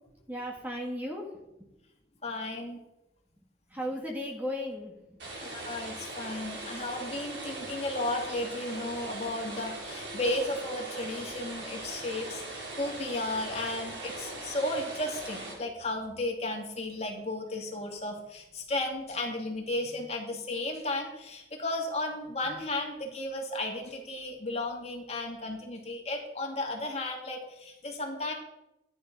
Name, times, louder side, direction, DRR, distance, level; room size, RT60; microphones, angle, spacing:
voice 1, 0.3-1.3 1.6-1.7 3.7-5.2, equal, 10° right, 0 dB, 1.8 m, -36 dB
voice 2, 2.2-2.8 5.4-28.3, left 2 dB, 35° left, 1 dB, 2.4 m, -34 dB
sound 1, 5.2-15.5, right 2 dB, 80° right, 4.8 m, -40 dB
13.0 x 10.0 x 5.4 m, 0.95 s
head